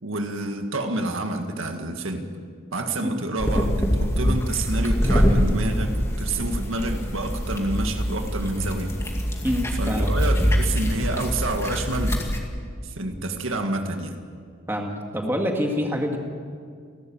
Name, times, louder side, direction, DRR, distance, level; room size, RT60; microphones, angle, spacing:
voice 1, 0.0-2.3 2.7-3.7 4.0-8.9 9.8-12.2 12.8-14.2, right 2 dB, 70° right, 5 dB, 1.9 m, -28 dB
sound 1, 3.4-12.4, equal, 15° left, 2.3 m, -24 dB
voice 2, 9.4-10.1 14.7-16.2, equal, 10° right, 2 dB, 2.0 m, -26 dB
29.5 x 12.5 x 8.8 m, 2.2 s
head